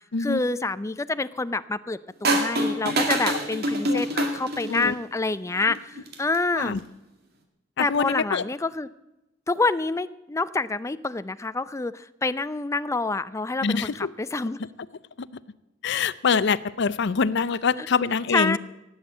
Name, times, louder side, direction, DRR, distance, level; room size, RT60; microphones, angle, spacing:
voice 1, 0.2-4.1 4.3-5.8 6.2-6.8 7.8-8.9 9.5-14.6 18.3-18.6, left 3 dB, 15° left, 15 dB, 0.4 m, -27 dB
sound 1, 2.2-5.0 6.0-6.4, right 1 dB, 55° right, 2.2 m, -25 dB
voice 2, 3.9-4.2 4.7-4.9 5.6-5.7 6.5-6.8 7.8-8.4 13.6-14.1 15.2-15.4 15.8-18.6, left 5 dB, 65° left, 16 dB, 0.5 m, -25 dB
17.5 x 8.0 x 8.2 m, 0.93 s
head